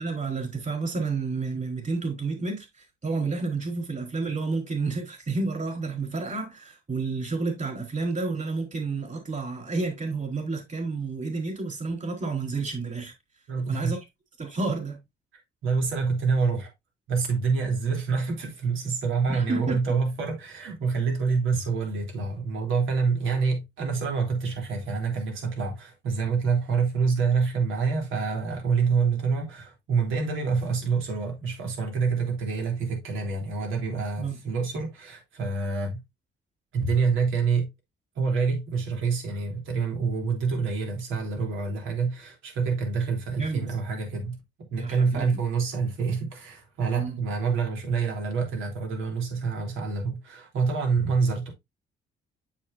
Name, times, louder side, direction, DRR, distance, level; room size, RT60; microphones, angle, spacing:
voice 1, 0.0-13.1 13.7-14.0 14.4-15.0 19.3-19.8 34.2-34.4 43.4-43.7 44.8-45.4 46.9-47.2, right 3 dB, 40° right, 4.5 m, -30 dB
voice 2, 13.5-13.9 15.6-16.7 17.1-36.0 36.7-37.7 38.1-44.4 44.7-51.5, right 5 dB, 85° right, 3.5 m, -27 dB
7.5 x 6.9 x 2.7 m
cardioid pair, 90°, 20 cm